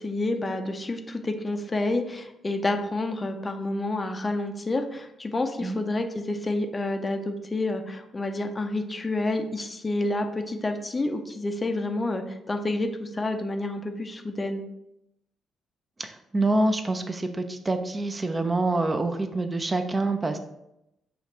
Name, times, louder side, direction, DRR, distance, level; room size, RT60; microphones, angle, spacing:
voice 1, 0.0-14.6, left 2 dB, 30° left, 5 dB, 0.5 m, -29 dB
voice 2, 16.0-20.4, right 2 dB, 30° right, 6 dB, 0.5 m, -26 dB
5.2 x 2.4 x 4.3 m, 0.84 s
hypercardioid pair, 45°, 0 cm